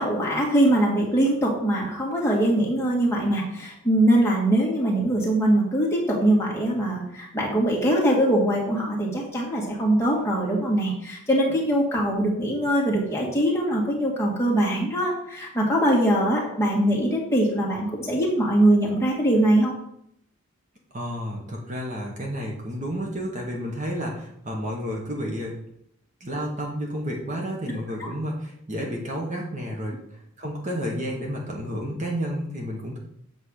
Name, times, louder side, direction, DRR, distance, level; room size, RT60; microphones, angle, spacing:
voice 1, 0.0-19.7, right 1 dB, 10° left, -4 dB, 2.0 m, -22 dB
voice 2, 20.9-25.5 26.2-33.0, equal, 35° right, -1 dB, 1.4 m, -31 dB
8.0 x 4.6 x 6.5 m, 0.72 s
head